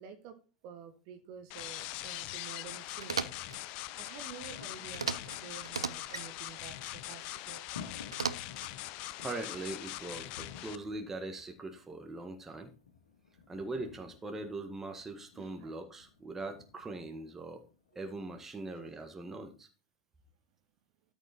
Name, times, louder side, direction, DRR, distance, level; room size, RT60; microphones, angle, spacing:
voice 1, 0.0-3.3 3.9-7.8 15.4-15.7, right 7 dB, 45° right, 6 dB, 1.6 m, -50 dB
sound 1, 1.5-10.8, left 16 dB, 40° left, 0.6 m, -42 dB
sound 2, 3.0-3.6 4.9-5.4 5.6-6.3 8.1-8.7, right 5 dB, 75° right, 0.6 m, -36 dB
sound 3, 3.2-18.3, left 6 dB, 65° left, 2.1 m, -55 dB
voice 2, 9.2-12.7 13.5-17.6 18.0-19.7, right 2 dB, 15° right, 4 dB, 1.8 m, -41 dB
12.5 x 5.4 x 4.4 m, 0.34 s
figure-of-eight pair, 95°, 3 cm